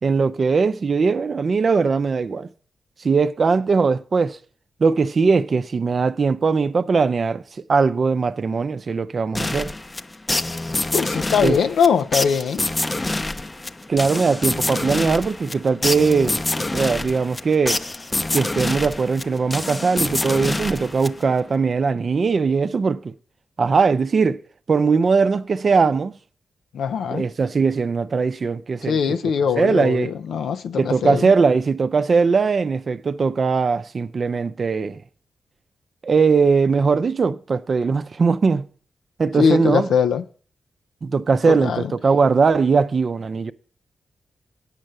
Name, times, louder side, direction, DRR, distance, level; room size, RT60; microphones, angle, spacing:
voice 1, 0.0-2.5 3.0-4.4 4.8-7.4 7.7-9.7 11.4-11.6 13.9-17.8 18.3-23.1 23.6-24.4 24.7-26.2 27.1-29.0 29.6-30.1 30.8-35.0 36.0-38.7 39.2-39.9 41.0-43.5, right 4 dB, 55° right, 0.6 m, -20 dB
sound 1, 9.4-21.5, left 2 dB, 30° left, 0.6 m, -26 dB
voice 2, 10.9-12.6 26.7-27.2 28.8-31.3 39.4-40.2 41.4-41.9, left 6 dB, 80° left, 0.4 m, -21 dB
9.0 x 5.4 x 7.5 m
supercardioid pair, 40°, 0 cm